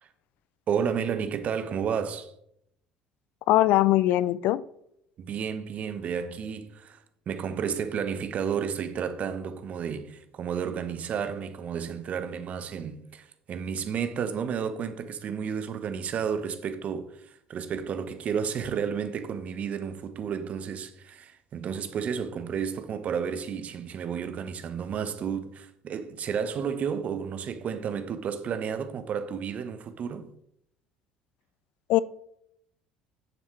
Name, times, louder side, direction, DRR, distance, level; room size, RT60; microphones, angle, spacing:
voice 1, 0.7-2.3 5.2-7.0 7.3-30.3, right 7 dB, 45° right, 0.9 m, -32 dB
voice 2, 3.5-4.6 31.9-32.0, left 15 dB, 55° left, 0.3 m, -21 dB
9.3 x 7.3 x 3.2 m
figure-of-eight pair, 60°, 3 cm